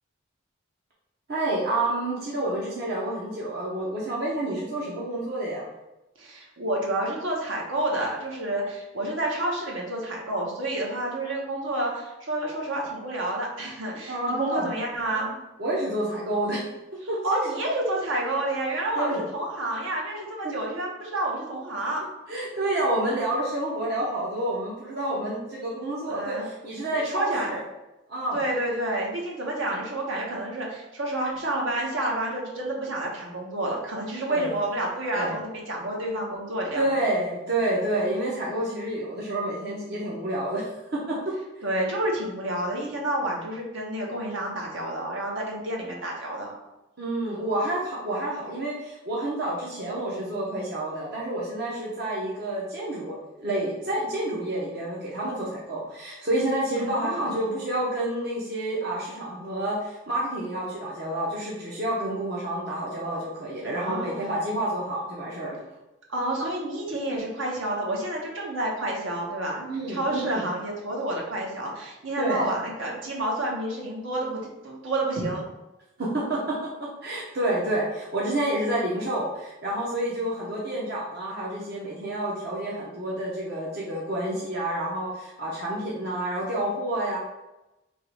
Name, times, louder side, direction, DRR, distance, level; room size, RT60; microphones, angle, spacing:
voice 1, 1.3-5.7 14.1-14.7 15.6-16.6 17.1-17.2 18.9-19.2 22.3-27.6 28.1-28.5 34.3-34.5 35.1-35.4 36.7-40.7 41.1-41.3 47.0-65.6 66.4-66.5 69.7-70.5 72.2-72.5 76.0-76.6 77.0-87.2, right 1 dB, 50° right, -5 dB, 0.9 m, -29 dB
voice 2, 6.2-15.4 17.2-22.0 26.1-26.4 26.9-27.5 28.3-36.8 41.6-46.5 56.7-57.5 63.6-64.1 66.1-75.4, right 1 dB, 70° right, -2 dB, 1.2 m, -29 dB
3.7 x 3.0 x 4.8 m, 0.98 s
head